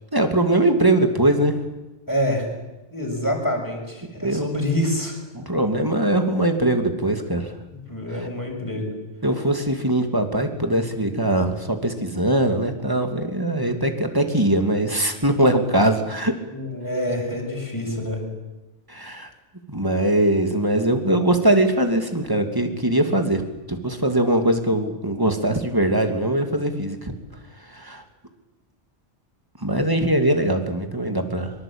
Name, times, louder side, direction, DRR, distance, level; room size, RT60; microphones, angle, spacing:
voice 1, 0.1-1.6 4.2-4.5 5.3-7.5 9.2-16.3 18.9-19.3 19.7-23.4 23.7-27.1 27.8-28.0 29.6-31.5, right 1 dB, 20° right, 6 dB, 2.7 m, -21 dB
voice 2, 2.1-2.5 2.9-5.2 7.9-8.9 16.5-18.2, left 1 dB, 15° left, 0 dB, 6.5 m, -26 dB
24.0 x 23.0 x 8.9 m, 1.1 s
omnidirectional pair, 1.2 m